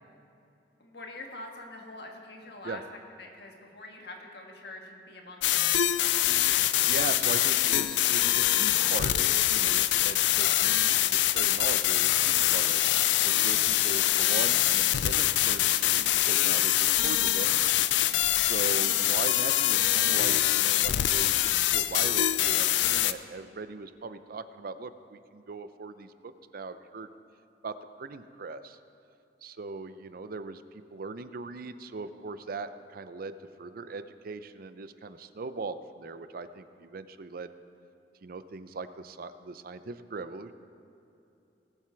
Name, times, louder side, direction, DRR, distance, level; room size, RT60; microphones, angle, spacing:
voice 1, 0.8-2.8 3.2-6.3 18.1-18.2, left 2 dB, 65° left, 2 dB, 1.6 m, -45 dB
sound 1, 5.4-23.1, left 13 dB, 90° left, 0.4 m, -24 dB
voice 2, 6.7-17.7 18.3-27.1 27.6-28.8 29.4-33.3 33.6-37.5 38.2-40.5, right 3 dB, 55° right, 12 dB, 0.5 m, -40 dB
19.0 x 7.5 x 4.6 m, 2.8 s
head